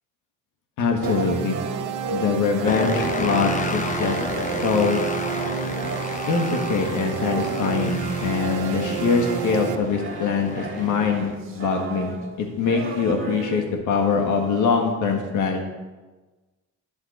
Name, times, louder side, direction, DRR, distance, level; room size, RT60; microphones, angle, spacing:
voice 1, 0.8-1.6 2.1-4.2 4.6-5.0 6.3-15.7, left 5 dB, 80° left, 2 dB, 1.7 m, -23 dB
sound 1, 1.0-13.7, right 4 dB, 45° right, 2.0 m, -35 dB
sound 2, 1.0-9.7, right 9 dB, 85° right, 0.8 m, -30 dB
sound 3, 2.7-11.3, left 4 dB, 25° left, 0.8 m, -32 dB
12.0 x 5.7 x 8.0 m, 1.2 s
cardioid pair, 90°, 30 cm